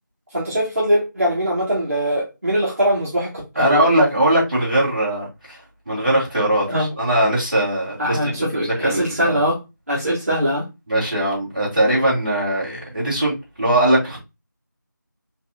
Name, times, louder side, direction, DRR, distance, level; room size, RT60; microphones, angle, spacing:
voice 1, 0.3-3.9 6.7-6.9 8.0-9.6 9.9-10.7, equal, 45° right, -7 dB, 1.5 m, -21 dB
voice 2, 3.6-5.6 5.9-9.4 10.9-14.2, right 1 dB, 25° right, -9 dB, 2.0 m, -20 dB
4.6 x 2.8 x 2.3 m, 0.24 s
figure-of-eight pair, 175°, 11 cm